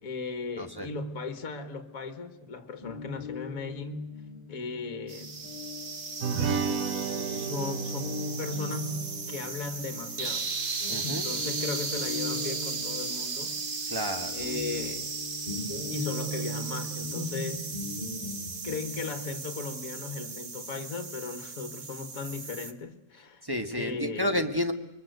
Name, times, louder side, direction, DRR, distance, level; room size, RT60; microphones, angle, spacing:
voice 1, 0.0-4.1 4.5-5.3 6.8-10.5 10.9-13.6 14.3-15.1 15.9-17.7 18.6-23.4 23.8-24.3, left 4 dB, 60° left, 2.0 m, -37 dB
voice 2, 0.6-0.9 10.9-11.2 13.9-14.3 23.4-24.7, left 1 dB, 15° right, 1.5 m, -30 dB
Guitar, 2.8-10.5 10.8-21.2, left 2 dB, 25° left, 3.7 m, -40 dB
sound 1, 5.1-22.7, right 4 dB, 35° right, 1.3 m, -36 dB
sound 2, 6.2-10.9, right 5 dB, 60° right, 1.5 m, -34 dB
26.0 x 22.5 x 8.0 m
omnidirectional pair, 1.7 m